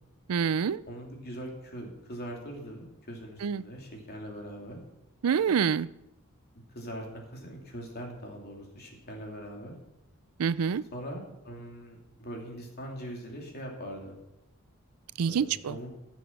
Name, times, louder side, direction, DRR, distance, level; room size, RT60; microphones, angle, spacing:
voice 1, 0.3-0.8 3.4-3.6 5.2-5.9 10.4-10.8 15.2-15.8, right 6 dB, 85° right, 18 dB, 0.4 m, -26 dB
voice 2, 0.8-4.8 6.7-9.7 10.9-14.1 15.2-15.9, equal, 45° left, 1 dB, 2.7 m, -41 dB
14.5 x 7.2 x 5.8 m, 0.89 s
head